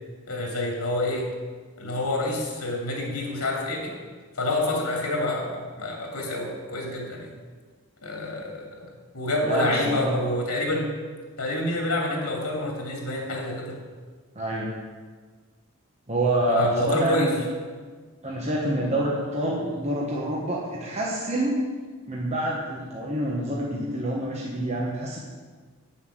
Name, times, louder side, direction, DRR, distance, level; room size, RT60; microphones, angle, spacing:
voice 1, 0.3-1.3 1.8-3.9 4.4-7.3 8.0-8.9 9.1-10.9 11.4-13.8 16.5-17.3, left 1 dB, 80° left, -1 dB, 2.7 m, -27 dB
voice 2, 9.4-10.1 14.3-14.7 16.1-17.4 18.2-21.6 22.1-25.2, right 1 dB, 30° right, -4 dB, 1.2 m, -27 dB
8.9 x 7.3 x 6.3 m, 1.5 s
head